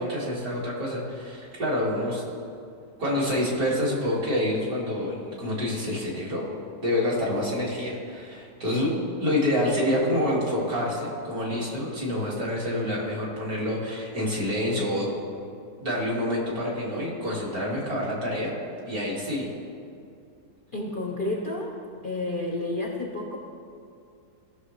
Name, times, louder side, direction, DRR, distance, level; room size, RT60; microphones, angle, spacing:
voice 1, 0.0-2.2 3.0-6.4 6.8-8.9 9.2-15.1 15.8-18.5 18.9-19.5, left 1 dB, 55° right, -6 dB, 2.6 m, -27 dB
voice 2, 20.7-21.7 22.0-23.4, left 2 dB, 45° left, -1 dB, 0.7 m, -30 dB
16.5 x 6.2 x 3.2 m, 2.5 s
omnidirectional pair, 1.9 m